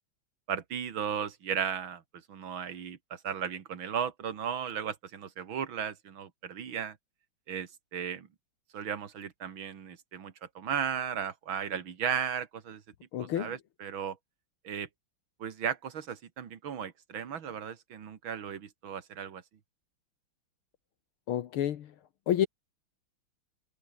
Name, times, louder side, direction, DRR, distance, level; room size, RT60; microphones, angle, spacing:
voice 1, 0.5-2.0 2.3-7.0 7.5-8.3 8.7-12.8 13.2-14.2 14.6-14.9 15.4-19.4, right 8 dB, 65° right, 2.6 m, -35 dB
voice 2, 13.1-13.5 21.3-21.9 22.3-22.5, left 11 dB, 75° left, 2.0 m, -29 dB
omnidirectional pair, 2.4 m